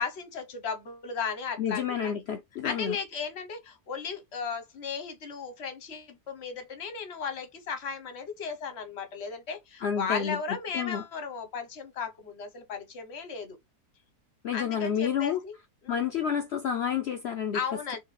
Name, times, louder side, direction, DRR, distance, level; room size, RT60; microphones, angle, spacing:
voice 1, 0.0-2.1 2.6-13.6 14.5-15.5 15.8-16.1 17.5-18.0, left 6 dB, 45° left, 1.1 m, -35 dB
voice 2, 1.6-3.0 9.8-11.0 14.4-15.4 15.9-17.6, left 8 dB, 80° left, 0.5 m, -30 dB
3.3 x 2.4 x 4.0 m
omnidirectional pair, 1.7 m